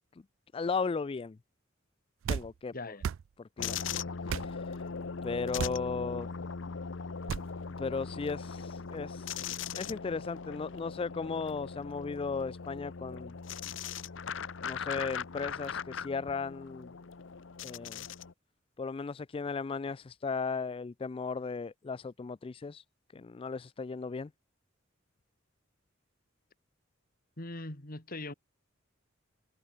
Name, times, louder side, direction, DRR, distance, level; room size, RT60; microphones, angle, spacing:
voice 1, 0.5-1.4 2.3-2.7 3.4-3.8 4.3-4.8 5.2-6.3 7.8-9.4 9.8-13.3 14.6-16.9 17.6-18.0 18.8-22.8 23.1-24.3, left 4 dB, 30° left, 0.4 m, -36 dB
sound 1, 2.2-2.5 3.0-3.2 4.3-4.5 5.6-5.8 7.3-7.5, right 7 dB, 80° right, 0.4 m, -33 dB
voice 2, 2.7-3.0 27.4-28.3, left 2 dB, 50° left, 3.0 m, -40 dB
sound 2, 3.6-18.3, left 6 dB, 70° left, 0.8 m, -39 dB
head